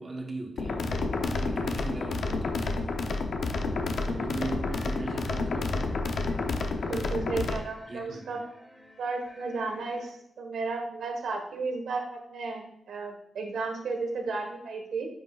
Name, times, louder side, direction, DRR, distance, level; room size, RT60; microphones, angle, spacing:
voice 1, 0.0-3.0 4.0-6.0 7.9-8.4, right 2 dB, 35° right, 1 dB, 1.2 m, -38 dB
sound 1, 0.6-7.6, left 3 dB, 65° left, 0.7 m, -30 dB
sound 2, 3.4-10.1, left 1 dB, 15° left, 1.1 m, -53 dB
voice 2, 6.8-8.4 9.0-15.1, right 4 dB, 85° right, 2 dB, 1.4 m, -33 dB
9.5 x 5.8 x 2.4 m, 0.73 s
wide cardioid pair, 145°, 0 cm